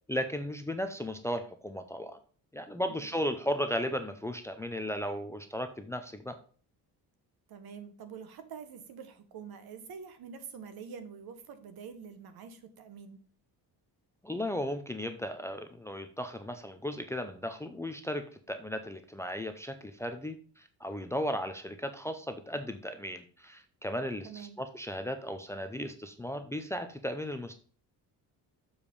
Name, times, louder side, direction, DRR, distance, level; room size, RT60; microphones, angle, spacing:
voice 1, 0.1-2.2 2.5-6.4 14.2-27.6, equal, 5° left, 7 dB, 0.5 m, -35 dB
voice 2, 7.5-13.2 24.2-24.6, right 6 dB, 65° right, 9 dB, 1.4 m, -46 dB
7.1 x 5.0 x 5.3 m, 0.42 s
cardioid pair, 175°, 39 cm